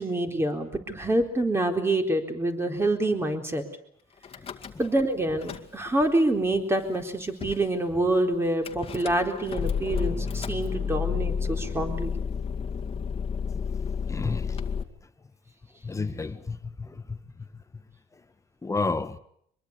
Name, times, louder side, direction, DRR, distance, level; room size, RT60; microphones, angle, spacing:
voice 1, 0.0-3.6 4.8-12.1, right 1 dB, 15° right, 4.1 m, -26 dB
Car / Engine starting / Idling, 4.2-5.0 5.3-6.1 6.7-6.8 7.0-7.1 7.4-7.7 8.6-14.8, left 6 dB, 35° left, 2.1 m, -31 dB
voice 2, 13.5-14.6 15.8-17.2 18.6-19.2, left 3 dB, 20° left, 1.5 m, -32 dB
24.5 x 22.5 x 8.3 m
cardioid pair, 110°, 17 cm